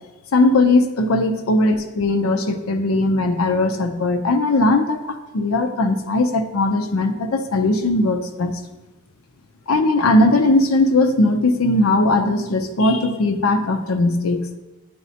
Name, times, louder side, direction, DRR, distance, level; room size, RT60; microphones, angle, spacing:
voice 1, 0.3-8.5 9.7-14.4, left 2 dB, 90° left, 6 dB, 0.6 m, -18 dB
9.3 x 4.1 x 2.8 m, 1.1 s
head